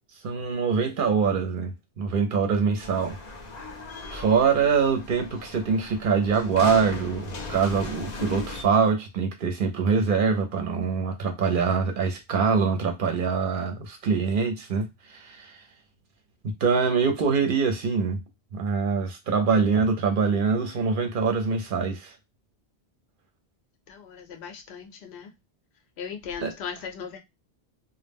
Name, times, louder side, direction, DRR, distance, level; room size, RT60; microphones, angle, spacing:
voice 1, 0.2-3.2 4.1-15.6 16.6-18.2 18.5-22.1 26.4-26.5, right 5 dB, 60° right, 0.7 m, -24 dB
sound 1, 2.8-8.6, left 3 dB, 50° left, 0.5 m, -38 dB
voice 2, 23.9-25.3 26.0-27.2, left 7 dB, 80° left, 0.8 m, -38 dB
2.0 x 2.0 x 3.3 m
omnidirectional pair, 1.1 m